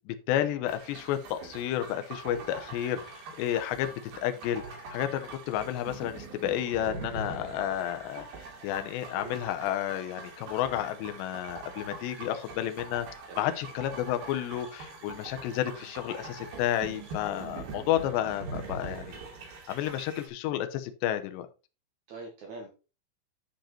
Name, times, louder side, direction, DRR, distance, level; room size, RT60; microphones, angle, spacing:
voice 1, 0.1-8.3 8.6-13.1 13.4-19.2 19.7-21.5, left 12 dB, 80° left, 2.6 m, -31 dB
sound 1, 0.7-20.3, right 3 dB, 50° right, 3.8 m, -43 dB
voice 2, 13.3-13.6 17.6-17.8 22.1-22.7, right 3 dB, 80° right, 1.6 m, -44 dB
10.5 x 5.3 x 4.3 m
omnidirectional pair, 5.9 m